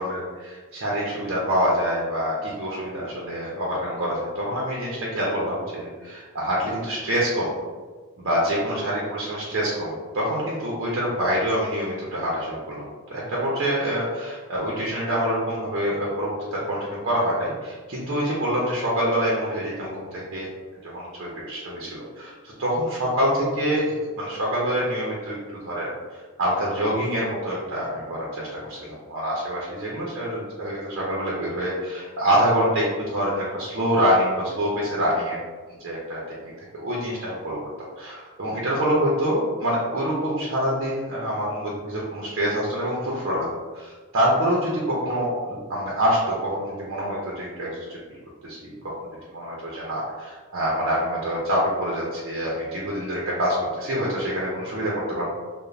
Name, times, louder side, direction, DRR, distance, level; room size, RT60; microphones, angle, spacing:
voice 1, 0.0-7.5 8.2-20.5 20.8-25.9 26.1-28.5 28.9-35.4 35.8-37.6 38.0-43.5 43.7-48.0 48.4-48.9 49.3-55.2, equal, 55° right, -5 dB, 0.5 m, -26 dB
2.4 x 2.0 x 3.0 m, 1.4 s
head